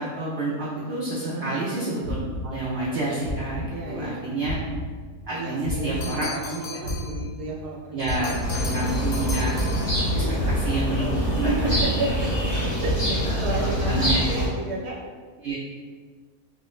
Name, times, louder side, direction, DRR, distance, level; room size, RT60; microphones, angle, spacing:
voice 1, 0.0-2.2 2.4-4.6 5.3-6.3 7.9-8.3 8.7-9.6 10.1-11.9 13.2-14.4 15.4-15.5, right 2 dB, 65° right, -7 dB, 0.6 m, -29 dB
sound 1, 2.0-2.9 3.2-4.1 4.4-6.5 6.8-8.9 9.2-10.1 10.4-11.3 11.6-12.5 12.8-13.7 14.0-14.2, left 1 dB, 80° left, 1.4 m, -34 dB
voice 2, 3.7-4.4 5.3-8.4 8.9-9.1 10.1-10.5 11.0-12.1 12.4-15.0, right 2 dB, 90° right, -3 dB, 1.2 m, -32 dB
sound 2, 6.0-7.2 8.0-10.2, left 4 dB, 55° left, 1.0 m, -38 dB
sound 3, 8.4-14.5, equal, 25° left, 0.7 m, -25 dB
4.3 x 2.0 x 2.4 m, 1.5 s
omnidirectional pair, 1.7 m